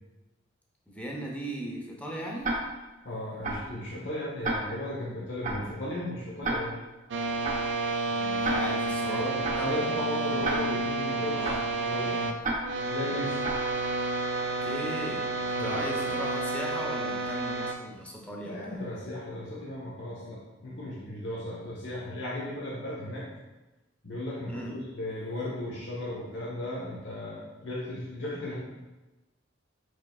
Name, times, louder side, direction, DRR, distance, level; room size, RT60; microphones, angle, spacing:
voice 1, 0.9-2.5 8.0-9.8 11.3-11.6 14.4-18.8 24.5-24.7, equal, 5° left, -2 dB, 0.7 m, -38 dB
Tick-tock, 2.4-2.9 3.4-3.8 4.4-4.9 5.4-5.8 6.4-6.9 7.4-7.8 8.4-8.9 9.4-9.8 10.4-10.9 11.4-11.8 12.4-12.9 13.4-13.8, right 2 dB, 40° right, 0.9 m, -32 dB
voice 2, 3.0-6.8 9.0-11.4 11.8-12.3 12.9-13.4 15.5-15.9 18.5-23.3 24.0-28.5, left 1 dB, 65° left, -6 dB, 1.1 m, -35 dB
sound 1, 7.1-12.3 12.6-17.7, right 2 dB, 65° right, 0.4 m, -30 dB
4.8 x 4.5 x 2.3 m, 1.1 s
head